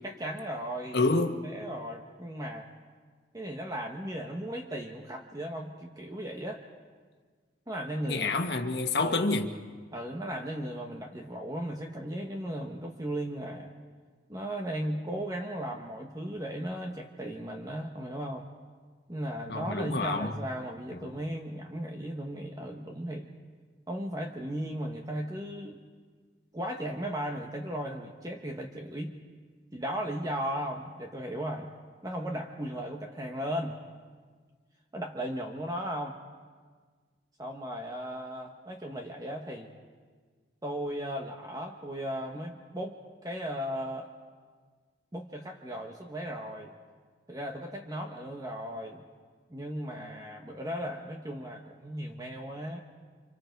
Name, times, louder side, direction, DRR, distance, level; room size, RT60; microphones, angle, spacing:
voice 1, 0.0-1.0 1.4-2.7 3.3-6.6 7.7-8.3 9.0-9.3 9.9-13.7 14.3-18.5 19.1-23.3 23.9-25.8 26.5-29.1 29.7-31.7 32.0-33.8 34.9-36.2 37.4-39.7 40.6-44.1 45.1-46.8 47.3-49.0 49.5-52.8, equal, 20° right, 1.3 m, -36 dB
voice 2, 0.9-1.4 8.0-9.5 19.5-20.3 21.0-21.1, left 3 dB, 65° left, 1.6 m, -28 dB
30.0 x 26.0 x 4.7 m
head